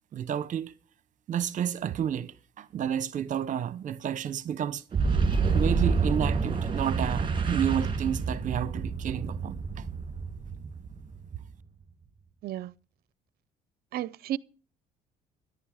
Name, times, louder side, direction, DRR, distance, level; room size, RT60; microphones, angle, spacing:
voice 1, 0.1-0.7 1.3-4.8 5.5-9.9, right 9 dB, 50° right, 1.0 m, -31 dB
Boom, 4.9-11.5, right 4 dB, 30° right, 2.4 m, -28 dB
voice 2, 13.9-14.4, right 12 dB, 65° right, 0.6 m, -32 dB
13.5 x 11.0 x 5.0 m
cardioid pair, 110°, 17 cm